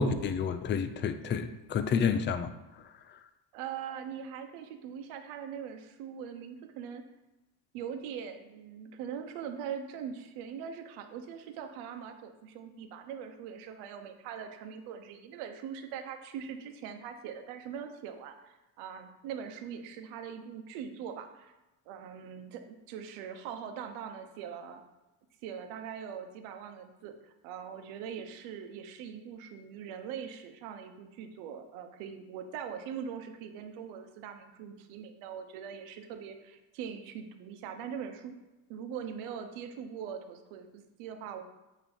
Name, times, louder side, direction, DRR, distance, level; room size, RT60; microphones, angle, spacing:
voice 1, 0.0-2.5, left 5 dB, 25° left, 10 dB, 0.4 m, -29 dB
voice 2, 3.5-7.0 7.7-21.5 21.9-24.8 25.4-38.4 38.7-41.4, right 7 dB, 80° right, 7 dB, 0.9 m, -42 dB
8.7 x 3.1 x 4.3 m, 1.0 s
supercardioid pair, 100°, 48 cm